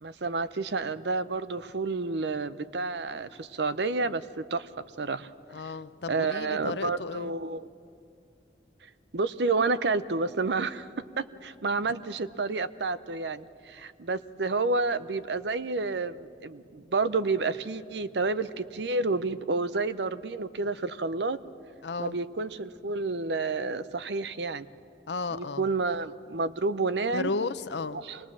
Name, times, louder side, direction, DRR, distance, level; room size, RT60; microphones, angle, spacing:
voice 1, 0.0-4.7 5.0-5.3 6.1-7.7 9.1-21.4 22.0-24.7 25.3-27.3 28.0-28.2, right 3 dB, 80° right, 14 dB, 0.7 m, -30 dB
voice 2, 5.5-7.3 21.8-22.2 25.1-25.6 27.1-28.0, left 3 dB, 80° left, 14 dB, 0.7 m, -33 dB
25.5 x 20.0 x 7.4 m, 2.5 s
head